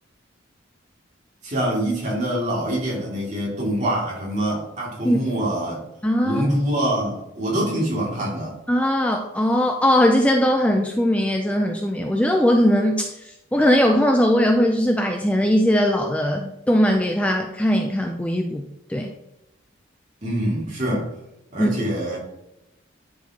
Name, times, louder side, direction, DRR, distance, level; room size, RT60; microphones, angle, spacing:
voice 1, 1.4-5.8 6.2-8.6 20.2-21.1 21.5-22.2, right 1 dB, 40° right, -5 dB, 2.6 m, -25 dB
voice 2, 6.0-6.5 8.7-19.1 21.6-21.7, equal, 5° left, 2 dB, 0.4 m, -20 dB
10.5 x 4.6 x 2.9 m, 0.88 s
head